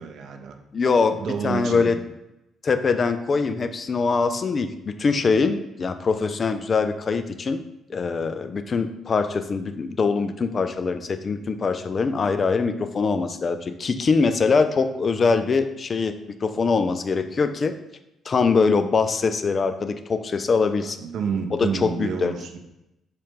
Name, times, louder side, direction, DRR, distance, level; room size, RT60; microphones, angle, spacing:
voice 1, 0.0-0.6 1.1-2.0 20.8-22.6, right 6 dB, 65° right, 5 dB, 0.5 m, -29 dB
voice 2, 0.7-1.9 2.6-7.6 7.9-16.2 16.4-17.7 18.3-21.0 21.6-22.3, left 4 dB, 45° left, 9 dB, 0.3 m, -23 dB
4.1 x 2.5 x 3.6 m, 0.89 s
hypercardioid pair, 50°, 0 cm